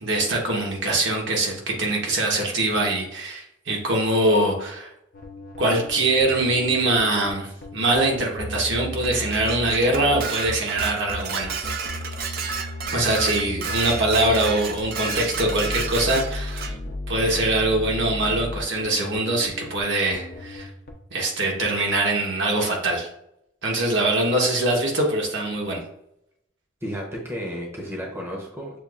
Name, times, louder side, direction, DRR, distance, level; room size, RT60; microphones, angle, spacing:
voice 1, 0.0-4.9 5.6-11.6 12.9-16.7 17.1-20.7 21.1-23.1 23.6-25.8, right 2 dB, 70° right, -1 dB, 1.1 m, -23 dB
sound 1, 5.1-20.9, left 2 dB, 50° left, 0.6 m, -35 dB
Dishes pots and pans, 9.0-16.7, right 5 dB, 50° right, 0.4 m, -32 dB
voice 2, 26.8-28.8, equal, 15° right, -2 dB, 0.7 m, -32 dB
6.7 x 2.5 x 2.4 m, 0.78 s
head